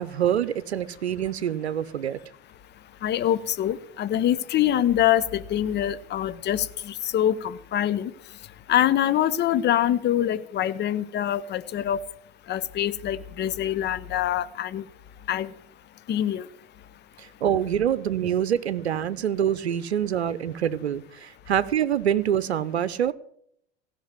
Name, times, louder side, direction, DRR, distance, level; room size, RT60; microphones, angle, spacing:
voice 1, 0.0-2.2 17.2-23.1, right 9 dB, 85° right, 0.7 m, -25 dB
voice 2, 3.0-8.1 8.7-12.0 12.5-14.8 15.3-15.5 16.1-16.5, left 11 dB, 35° left, 0.8 m, -24 dB
16.0 x 6.0 x 9.6 m
figure-of-eight pair, 80°, 32 cm